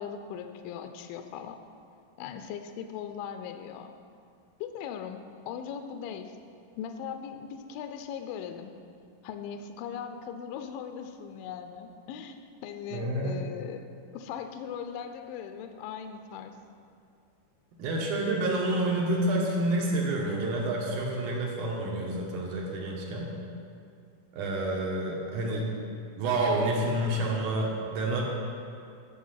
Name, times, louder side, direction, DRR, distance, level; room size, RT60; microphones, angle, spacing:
voice 1, 0.0-1.6 2.2-3.9 4.6-6.4 6.8-8.8 9.2-13.9 14.1-16.6, left 7 dB, 90° left, 7 dB, 2.0 m, -39 dB
voice 2, 12.9-13.4 17.8-23.3 24.3-25.7 26.2-28.2, right 1 dB, 70° right, -2 dB, 2.0 m, -28 dB
8.5 x 6.8 x 5.6 m, 2.3 s
omnidirectional pair, 4.7 m